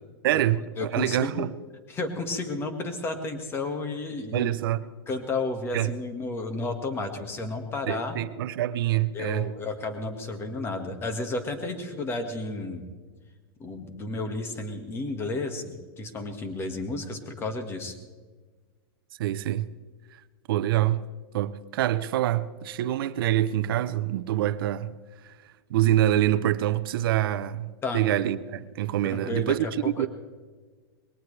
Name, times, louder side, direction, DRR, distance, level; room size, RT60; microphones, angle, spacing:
voice 1, 0.2-1.5 4.3-4.9 5.7-5.9 7.9-9.5 19.2-19.7 20.5-21.0 21.3-24.9 25.7-30.1, right 13 dB, 65° right, 0.8 m, -26 dB
voice 2, 0.8-1.5 1.9-4.5 5.1-8.2 9.1-12.8 13.6-17.9 27.8-28.0 29.0-30.1, left 2 dB, 20° left, 1.8 m, -32 dB
21.5 x 18.0 x 3.3 m
supercardioid pair, 145°, 13 cm